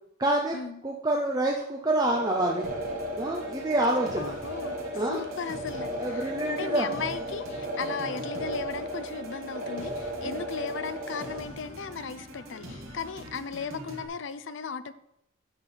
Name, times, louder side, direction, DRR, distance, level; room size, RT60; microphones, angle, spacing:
voice 1, 0.2-0.6 0.8-2.7 3.2-4.3 4.9-5.2 6.0-6.9, right 1 dB, 20° right, 0 dB, 0.6 m, -27 dB
sound 1, 2.1-11.4, right 1 dB, 40° right, 1.5 m, -35 dB
sound 2, 2.6-14.1, equal, 80° right, 1.9 m, -44 dB
voice 2, 4.2-4.8 5.1-14.9, left 5 dB, 60° left, 13 dB, 0.5 m, -36 dB
8.0 x 6.2 x 5.6 m, 0.81 s
head